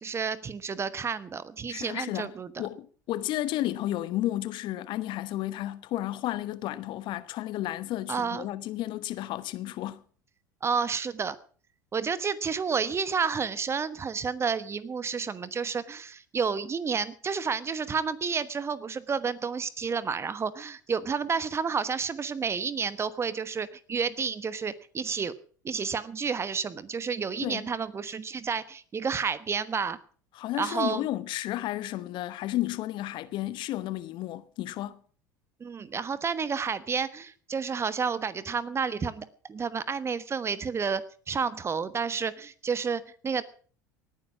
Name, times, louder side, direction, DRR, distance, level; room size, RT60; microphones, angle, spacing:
voice 1, 0.0-2.5 8.1-8.5 10.6-11.3 11.9-25.3 25.6-30.0 30.6-31.1 35.6-43.4, right 5 dB, 25° right, 1.2 m, -30 dB
voice 2, 1.7-2.3 2.6-10.0 27.4-27.7 30.3-35.0, left 14 dB, 50° left, 1.0 m, -32 dB
18.5 x 9.7 x 6.0 m
figure-of-eight pair, 75°, 10 cm